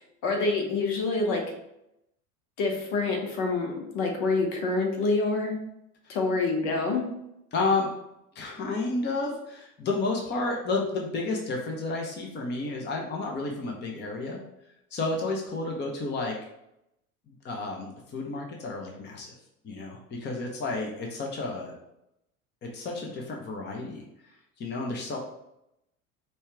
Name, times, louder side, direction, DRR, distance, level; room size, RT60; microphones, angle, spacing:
voice 1, 0.2-1.5 2.6-5.5 6.1-7.1, left 3 dB, 55° left, 2 dB, 1.1 m, -27 dB
voice 2, 7.5-7.9 8.3-14.4 14.9-16.4 17.4-19.3 19.6-21.7 22.7-24.1 24.6-25.2, left 3 dB, 25° left, 0 dB, 0.8 m, -31 dB
5.4 x 2.3 x 3.3 m, 0.83 s
figure-of-eight pair, 75°, 44 cm